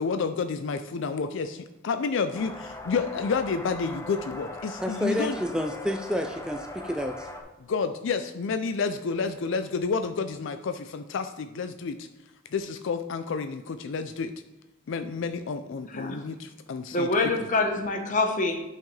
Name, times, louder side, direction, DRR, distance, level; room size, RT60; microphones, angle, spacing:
voice 1, 0.0-5.4 7.7-12.1 12.5-14.3 14.9-17.1, left 5 dB, 65° left, 0.4 m, -30 dB
sound 1, 2.3-7.4, left 2 dB, 15° left, 0.7 m, -40 dB
voice 2, 4.8-7.3, equal, 5° right, 0.3 m, -29 dB
voice 3, 15.9-16.2 16.9-18.6, left 2 dB, 40° left, 1.0 m, -26 dB
8.9 x 5.7 x 3.3 m
head